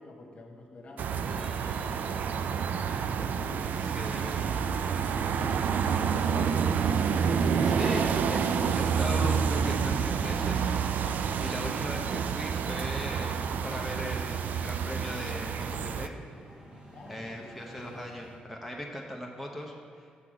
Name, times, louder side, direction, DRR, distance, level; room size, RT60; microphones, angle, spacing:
voice 1, 0.0-3.7 5.4-6.7 16.9-17.5, left 2 dB, 45° left, 1 dB, 1.2 m, -47 dB
sound 1, 1.0-18.4, equal, 35° right, 1.3 m, -48 dB
sound 2, 1.0-16.1, right 6 dB, 65° right, 0.4 m, -28 dB
voice 2, 3.7-4.6 7.6-10.7 11.4-16.2 17.1-20.1, equal, ahead, 0 dB, 0.8 m, -39 dB
7.1 x 5.9 x 4.9 m, 2.2 s
cardioid pair, 100°, 3 cm